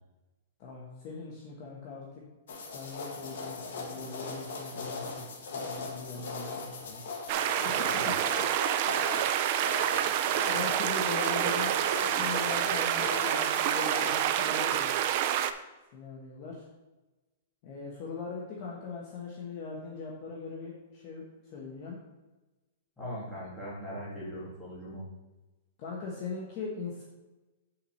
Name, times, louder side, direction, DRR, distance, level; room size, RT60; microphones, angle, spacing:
voice 1, 0.6-2.2 2.7-7.0 7.6-8.2 10.5-11.7 12.0-15.3 15.9-16.6 17.6-21.2 21.5-22.0 25.8-27.0, left 4 dB, 30° left, -3 dB, 1.2 m, -40 dB
sound 1, 2.5-14.2, left 3 dB, 65° left, 1.6 m, -39 dB
sound 2, 7.3-15.5, right 11 dB, 35° right, 0.4 m, -28 dB
voice 2, 23.0-25.0, equal, 5° left, -9 dB, 2.5 m, -40 dB
5.9 x 4.7 x 6.6 m, 1.1 s
supercardioid pair, 175°, 0 cm